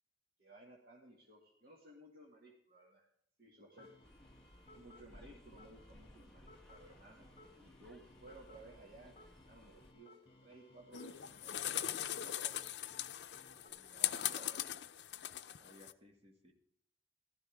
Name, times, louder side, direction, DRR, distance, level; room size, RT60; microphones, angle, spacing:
voice 1, 0.4-3.1 3.4-3.9 4.7-7.3 7.6-10.1 10.4-11.5 12.0-12.7 13.9-14.6, right 2 dB, 60° right, -2 dB, 2.0 m, -58 dB
sound 1, 3.7-13.7, left 2 dB, 30° left, 2.2 m, -62 dB
sound 2, 4.0-9.9, equal, 5° left, 1.2 m, -61 dB
sound 3, 10.9-15.9, left 12 dB, 75° left, 0.5 m, -40 dB
voice 2, 13.6-14.5 15.6-16.5, equal, 35° right, 1 dB, 2.0 m, -61 dB
15.5 x 12.5 x 3.5 m, 0.71 s
head